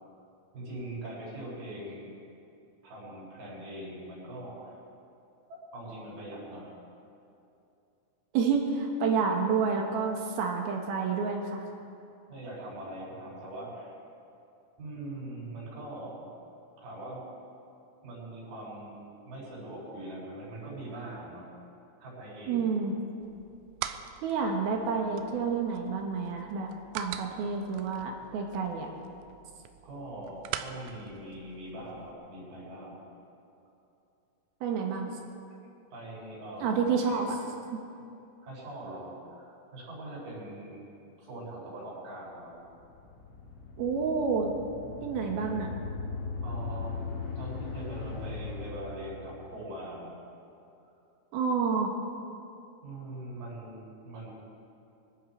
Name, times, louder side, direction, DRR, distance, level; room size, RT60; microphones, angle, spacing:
voice 1, 0.5-2.1 2.8-4.8 5.5-6.7 12.3-13.9 14.8-16.3 16.8-17.2 18.0-21.4 22.0-22.7 29.8-33.0 35.9-37.2 38.4-40.8 41.2-42.5 46.4-50.1 52.8-54.3, right 1 dB, 50° right, -5 dB, 6.8 m, -42 dB
voice 2, 8.3-11.7 22.5-22.9 24.2-28.9 34.6-35.1 36.6-37.4 37.7-37.8 43.8-44.5 45.0-45.7 51.3-51.9, right 5 dB, 65° right, 1 dB, 2.7 m, -29 dB
sound 1, 23.2-32.1, right 11 dB, 85° right, 3.1 m, -44 dB
sound 2, 42.6-49.5, left 4 dB, 75° left, 4.8 m, -39 dB
24.5 x 12.0 x 4.6 m, 2.7 s
omnidirectional pair, 5.7 m